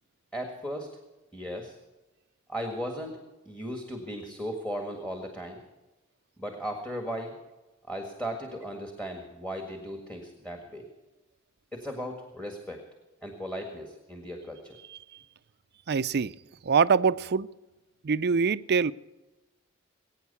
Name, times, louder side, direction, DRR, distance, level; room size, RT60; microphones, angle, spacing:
voice 1, 0.3-0.9 1.3-1.8 2.5-5.6 6.4-7.4 7.9-10.9 11.7-12.8 13.2-14.8, equal, 5° left, 1.7 m, -36 dB
voice 2, 15.9-16.3 16.6-17.5 18.0-18.9, right 5 dB, 50° right, 0.5 m, -24 dB
21.0 x 9.2 x 6.9 m
head